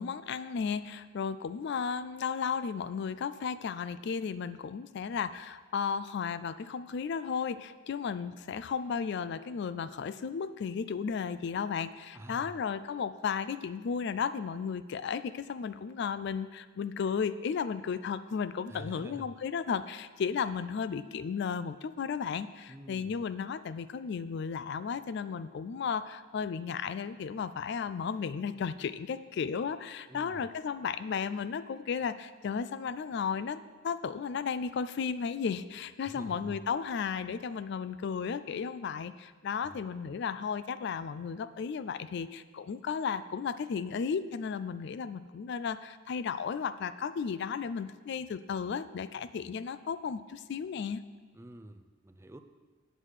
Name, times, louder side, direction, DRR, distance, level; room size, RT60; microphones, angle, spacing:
voice 1, 0.0-51.0, left 6 dB, 60° left, 14 dB, 0.3 m, -34 dB
voice 2, 12.1-12.5 18.7-19.3 22.7-23.2 30.1-30.5 36.0-36.6 39.7-39.8 51.3-52.4, right 1 dB, 15° right, 8 dB, 0.4 m, -47 dB
8.1 x 7.4 x 6.5 m, 1.4 s
head